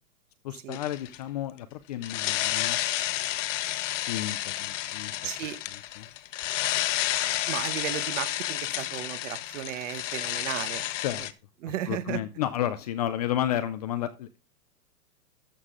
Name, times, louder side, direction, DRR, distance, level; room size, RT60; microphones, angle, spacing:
voice 1, 0.4-2.8 4.1-5.3 6.0-6.1 11.0-11.3 11.7-14.4, left 12 dB, 30° left, 0.4 m, -32 dB
sound 1, 0.7-1.2 2.0-11.3, left 14 dB, 55° left, 0.9 m, -31 dB
voice 2, 5.2-5.6 7.5-10.9 11.6-12.2, right 12 dB, 50° right, 1.2 m, -34 dB
13.0 x 7.1 x 3.6 m
hypercardioid pair, 140°, 46 cm